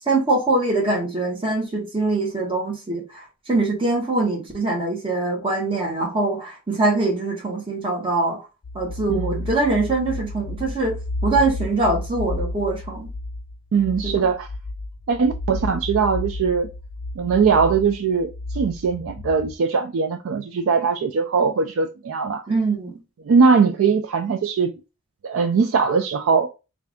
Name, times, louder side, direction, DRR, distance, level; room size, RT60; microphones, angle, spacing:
voice 1, 0.1-8.4 8.7-11.0 11.2-13.1 14.0-14.2 22.5-23.0, right 2 dB, 25° right, 1.1 m, -23 dB
sound 1, 8.6-19.6, left 2 dB, 85° left, 0.5 m, -32 dB
voice 2, 9.1-9.5 13.7-14.5 15.1-16.7 17.2-22.4 23.2-24.7 25.2-26.5, right 5 dB, 65° right, 0.3 m, -20 dB
3.3 x 2.5 x 3.4 m
head